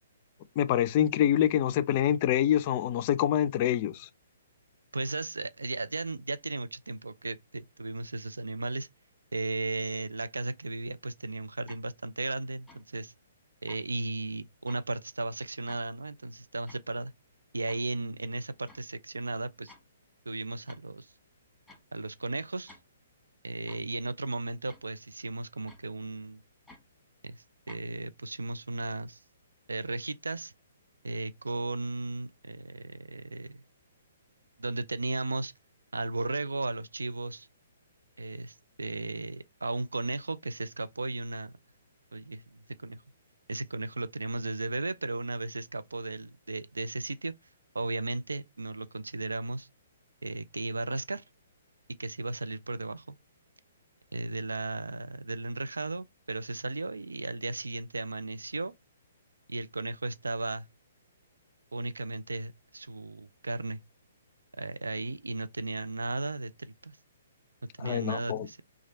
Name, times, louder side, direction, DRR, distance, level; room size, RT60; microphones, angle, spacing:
voice 1, 0.6-4.1 67.8-68.5, left 11 dB, 40° left, 0.4 m, -26 dB
voice 2, 4.9-8.9 9.3-13.1 13.6-17.1 17.5-19.7 20.3-21.1 21.9-22.7 23.4-26.4 27.2-29.2 29.7-30.5 31.0-33.6 34.6-35.5 35.9-37.5 38.2-41.6 42.1-43.0 43.5-47.3 47.7-49.7 50.2-51.2 52.0-53.2 54.1-58.7 59.5-60.7 61.7-63.8 64.6-67.0 67.8-68.6, right 2 dB, 80° right, 0.3 m, -35 dB
sound 1, 11.7-11.9 12.7-12.9 13.7-13.8 14.7-14.9 15.7-15.9 16.7-16.8 17.7-17.8 18.7-18.9 19.7-19.8 20.7-20.9 21.7-21.8 22.7-22.9 23.7-23.9 24.7-24.9 25.7-25.8 26.7-26.8 27.7-27.9, left 2 dB, ahead, 1.3 m, -54 dB
3.2 x 2.4 x 3.9 m
figure-of-eight pair, 125°, 0 cm